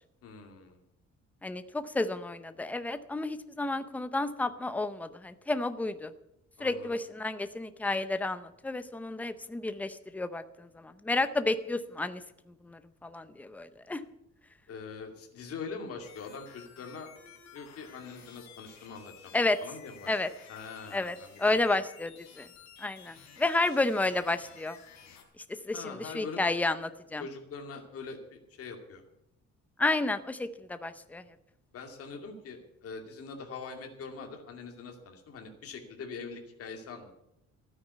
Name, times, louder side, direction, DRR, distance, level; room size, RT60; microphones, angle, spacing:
voice 1, 0.2-0.8 6.6-7.0 14.7-17.1 17.5-19.3 19.6-20.2 20.5-21.6 25.7-26.4 27.2-29.0 31.7-37.1, left 5 dB, 50° left, 3 dB, 2.4 m, -43 dB
voice 2, 1.4-6.1 6.6-12.2 12.6-14.0 19.3-19.6 20.1-20.3 20.9-22.5 22.8-24.8 25.5-27.2 29.8-31.2, left 2 dB, 5° left, 11 dB, 0.6 m, -31 dB
sound 1, 16.0-25.2, left 8 dB, 65° left, 3.6 m, -53 dB
13.0 x 9.6 x 8.2 m, 0.83 s
cardioid pair, 170°, 29 cm